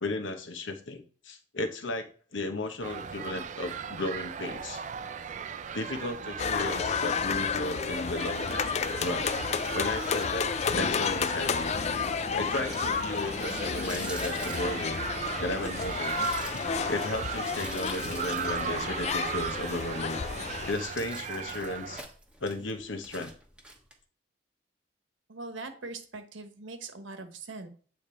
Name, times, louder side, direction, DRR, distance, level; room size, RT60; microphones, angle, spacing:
voice 1, 0.0-4.8 5.7-8.6 9.0-9.3 9.7-11.7 12.3-15.1 15.4-16.2 16.9-20.4 20.7-22.0 22.4-23.3, left 2 dB, 80° left, 7 dB, 1.0 m, -35 dB
sound 1, 2.8-22.0, right 7 dB, 40° right, 0.4 m, -37 dB
sound 2, 6.4-20.7, left 6 dB, 35° left, 0.3 m, -31 dB
sound 3, 9.8-23.9, right 1 dB, 5° right, 0.9 m, -48 dB
voice 2, 25.3-27.7, right 3 dB, 85° right, 8 dB, 1.1 m, -41 dB
8.6 x 3.4 x 4.4 m, 0.43 s
head